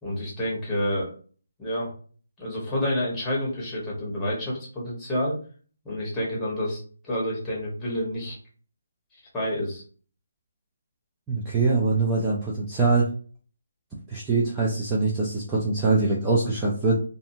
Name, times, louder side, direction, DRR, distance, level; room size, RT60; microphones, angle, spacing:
voice 1, 0.0-1.1 1.6-1.9 2.4-5.4 5.8-8.4 9.3-9.8, left 1 dB, 10° left, -5 dB, 1.2 m, -29 dB
voice 2, 11.3-13.1 14.1-17.0, right 3 dB, 10° right, -5 dB, 0.4 m, -23 dB
2.6 x 2.5 x 2.7 m, 0.42 s
hypercardioid pair, 160°, 0 cm